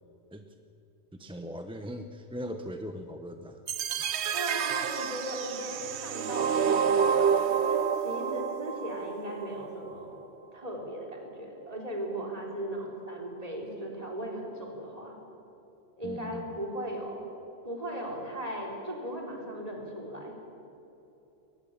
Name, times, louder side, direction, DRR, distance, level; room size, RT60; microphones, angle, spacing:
voice 1, 1.1-3.6 16.0-16.6, equal, 5° right, 6 dB, 0.7 m, -40 dB
sound 1, 3.7-9.7, right 7 dB, 70° right, 1.0 m, -28 dB
voice 2, 4.3-10.2 10.5-15.1 16.0-17.2 17.6-20.4, right 1 dB, 30° right, -1 dB, 3.9 m, -37 dB
22.0 x 19.5 x 7.4 m, 3.0 s
omnidirectional pair, 1.2 m